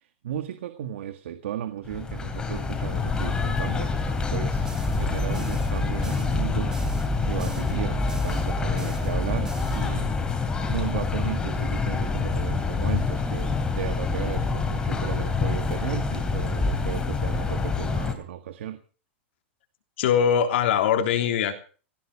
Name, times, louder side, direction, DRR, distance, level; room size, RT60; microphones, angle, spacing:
voice 1, 0.2-10.3 10.7-18.8, right 10 dB, 85° right, 9 dB, 1.7 m, -35 dB
sound 1, 1.9-18.1, left 4 dB, 10° left, 3.1 m, -27 dB
sound 2, 4.3-10.4, right 3 dB, 10° right, 1.3 m, -34 dB
voice 2, 20.0-21.6, left 8 dB, 75° left, 5 dB, 3.4 m, -22 dB
18.5 x 15.0 x 5.0 m, 0.39 s
supercardioid pair, 160°, 6 cm